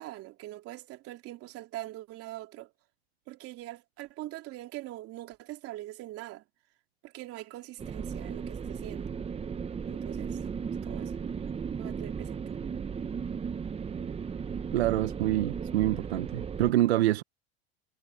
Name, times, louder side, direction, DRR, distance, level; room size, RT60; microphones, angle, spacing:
voice 1, 0.0-2.7 3.3-6.4 7.0-9.1 9.9-10.5 10.8-11.2 11.8-12.4, right 16 dB, 45° right, 3.0 m, -43 dB
sound 1, 7.8-16.7, right 6 dB, 20° right, 1.2 m, -36 dB
voice 2, 14.7-17.2, right 14 dB, 90° right, 1.0 m, -26 dB
supercardioid pair, 115°, 32 cm